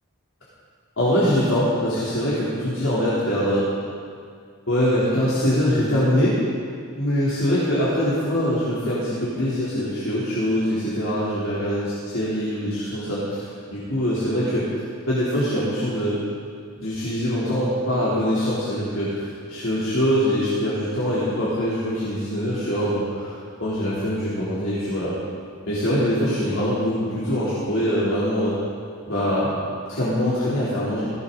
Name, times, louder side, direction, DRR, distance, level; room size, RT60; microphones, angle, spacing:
voice 1, 1.0-3.7 4.7-6.4 7.0-14.7 15.1-16.2 16.8-23.3 23.6-25.2 25.7-28.6 29.1-29.6 29.9-31.1, equal, 80° left, -10 dB, 3.6 m, -23 dB
17.5 x 16.0 x 4.1 m, 2.2 s
head